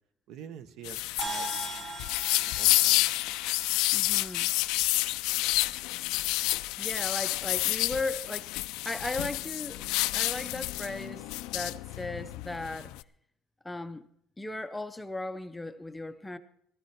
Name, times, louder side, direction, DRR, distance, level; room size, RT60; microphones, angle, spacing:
voice 1, 0.3-1.9 2.4-3.1, right 8 dB, 60° right, 1.1 m, -47 dB
sound 1, 0.8-13.0, left 19 dB, 85° left, 0.5 m, -29 dB
sound 2, 1.2-5.8, right 3 dB, 30° right, 1.3 m, -42 dB
voice 2, 3.9-4.5 6.8-9.9 10.1-11.3 11.5-12.9 13.6-14.1 14.4-16.4, left 2 dB, 5° left, 0.5 m, -36 dB
17.0 x 13.5 x 4.4 m
cardioid pair, 170°, 0 cm